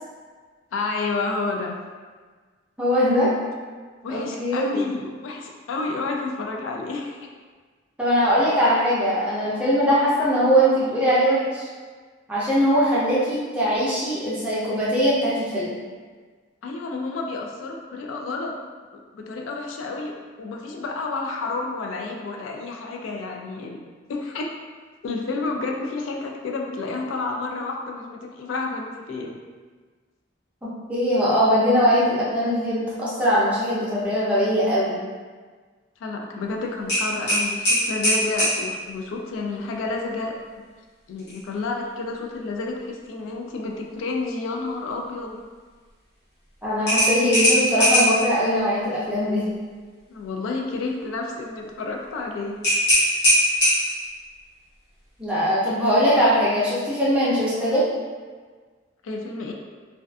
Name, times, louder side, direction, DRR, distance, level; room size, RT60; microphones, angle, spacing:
voice 1, 0.7-1.8 4.0-7.2 16.6-18.6 18.9-23.8 24.1-24.5 25.0-29.4 36.0-40.3 41.1-45.4 50.1-52.6 59.0-59.5, left 3 dB, 90° left, 1 dB, 0.3 m, -30 dB
voice 2, 2.8-3.3 4.1-4.8 8.0-11.7 12.3-15.7 30.6-35.0 46.6-49.4 55.2-57.9, equal, 5° right, -9 dB, 0.5 m, -21 dB
sound 1, 36.9-38.6 41.2-41.4 41.8-41.9 46.9-48.2 52.6-54.1, equal, 55° left, 1.0 m, -19 dB
2.4 x 2.3 x 2.2 m, 1.5 s
head